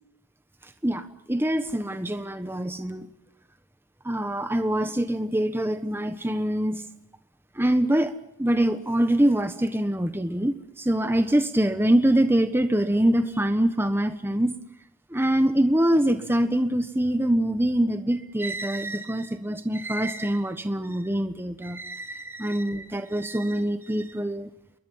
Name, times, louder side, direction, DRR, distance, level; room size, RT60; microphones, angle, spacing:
voice 1, 0.8-3.1 4.0-6.8 7.6-14.5 15.1-24.5, right 1 dB, 10° right, 9 dB, 1.2 m, -24 dB
29.0 x 22.0 x 5.7 m, 0.81 s
head